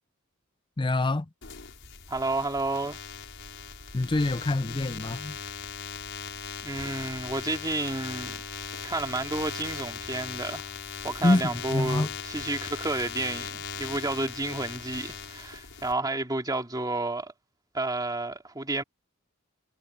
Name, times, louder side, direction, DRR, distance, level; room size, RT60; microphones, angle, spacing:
voice 1, 0.8-1.3 3.9-5.4 11.2-12.1, left 2 dB, 20° left, 0.5 m, -25 dB
sound 1, 1.4-15.9, left 6 dB, 55° left, 6.0 m, -39 dB
voice 2, 2.1-3.0 6.6-8.4 8.8-10.7 11.0-17.3 17.7-18.8, right 2 dB, 15° right, 2.9 m, -31 dB
head